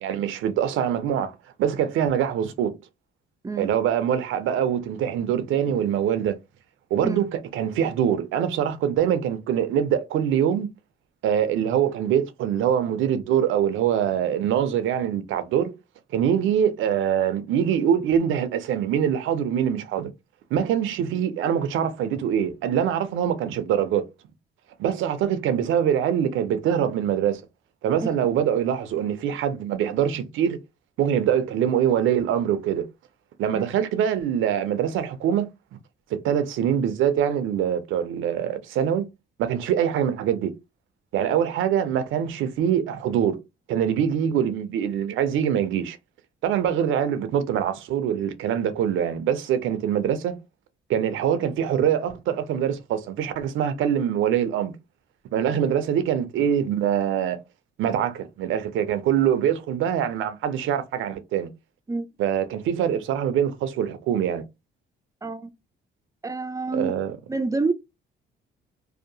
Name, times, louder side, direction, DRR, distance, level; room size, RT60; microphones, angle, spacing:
voice 1, 0.0-1.3 1.6-2.8 3.6-6.4 6.9-10.7 11.2-15.7 16.1-20.1 20.5-24.0 24.8-27.4 27.8-30.6 31.0-32.9 33.4-35.5 36.1-39.1 39.4-40.5 41.1-43.4 43.7-46.0 46.4-50.4 50.9-54.7 55.3-57.4 57.8-61.5 62.2-64.4 66.7-67.1, right 9 dB, 80° right, 0.5 m, -24 dB
voice 2, 65.2-65.5 66.2-67.0 67.3-67.7, right 3 dB, 15° right, 0.4 m, -27 dB
2.7 x 2.0 x 2.6 m
cardioid pair, 90°, 20 cm